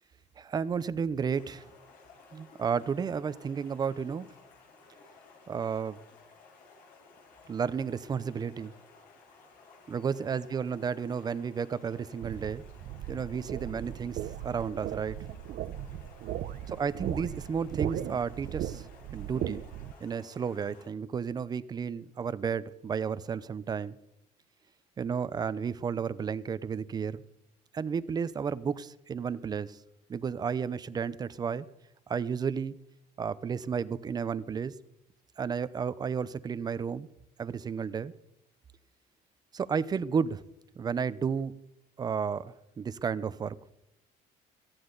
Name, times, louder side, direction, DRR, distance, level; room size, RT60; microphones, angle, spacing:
voice 1, 0.4-1.7 2.3-4.3 5.5-6.0 7.5-8.7 9.9-12.6 13.1-15.2 16.8-18.9 19.1-19.6 20.0-24.0 25.0-27.2 27.7-29.8 30.1-31.7 32.1-32.7 33.2-34.7 35.4-37.1 37.4-38.1 39.5-40.4 40.8-41.5 42.0-43.6, right 6 dB, 25° right, 16 dB, 0.6 m, -32 dB
Stream, 1.3-20.9, left 4 dB, 75° left, 7.7 m, -57 dB
sound 1, 12.2-19.9, right 12 dB, 60° right, 0.7 m, -38 dB
18.0 x 14.5 x 3.9 m, 0.87 s
cardioid pair, 155°, 16 cm